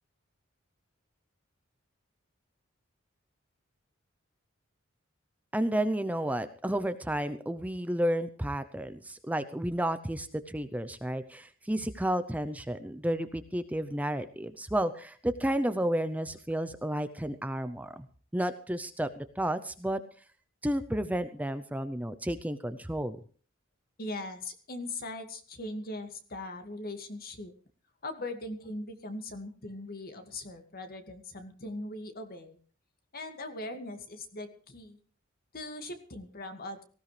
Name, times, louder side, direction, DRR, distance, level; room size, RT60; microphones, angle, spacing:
voice 1, 5.5-18.1 18.3-20.0 20.6-23.2, right 1 dB, 10° right, 11 dB, 0.7 m, -31 dB
voice 2, 24.0-27.5 28.0-32.6 33.1-35.0 35.5-36.8, left 2 dB, 50° left, 7 dB, 2.2 m, -40 dB
18.5 x 16.0 x 3.4 m, 0.41 s
head